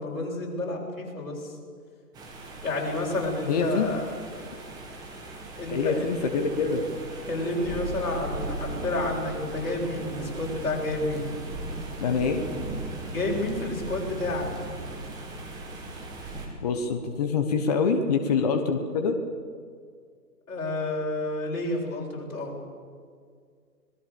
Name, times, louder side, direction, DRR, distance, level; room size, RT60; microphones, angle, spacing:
voice 1, 0.0-1.6 2.6-4.1 5.5-6.1 7.3-11.2 13.1-14.5 20.5-22.5, left 2 dB, 55° left, -2 dB, 7.6 m, -30 dB
sound 1, 2.1-16.5, right 2 dB, 10° right, 2.0 m, -37 dB
voice 2, 3.4-3.9 5.7-6.8 12.0-12.4 16.6-19.2, left 5 dB, 25° left, 5 dB, 1.2 m, -25 dB
26.0 x 20.0 x 7.0 m, 2.1 s
figure-of-eight pair, 150°, 49 cm